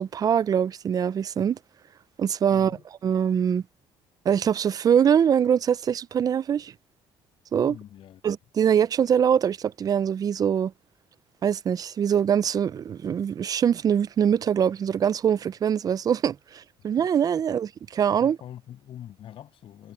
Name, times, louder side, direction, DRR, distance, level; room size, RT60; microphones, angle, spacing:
voice 1, 0.0-1.6 2.2-3.6 4.3-6.7 7.5-7.8 8.2-10.7 11.4-18.4, right 8 dB, 35° right, 0.4 m, -23 dB
voice 2, 2.5-2.8 7.6-8.2 18.2-19.9, left 11 dB, 55° left, 6.7 m, -44 dB
cardioid pair, 105°, 11 cm